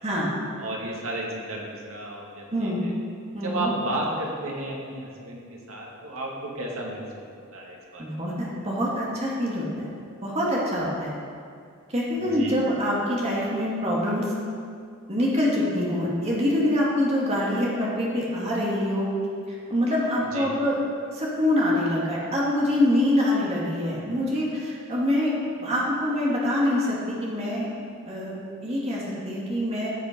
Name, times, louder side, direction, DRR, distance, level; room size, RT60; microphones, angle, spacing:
voice 1, 0.6-2.7 3.4-8.2 12.2-12.5 20.3-20.5, right 1 dB, 75° right, -2 dB, 2.3 m, -33 dB
voice 2, 2.5-2.8 3.3-3.7 8.0-9.8 10.2-11.1 11.9-14.3 15.1-19.1 19.7-20.8 21.1-25.3 25.6-27.7 28.1-28.3 28.6-29.9, left 1 dB, 30° right, -5 dB, 2.5 m, -25 dB
14.0 x 7.3 x 5.3 m, 2.3 s
head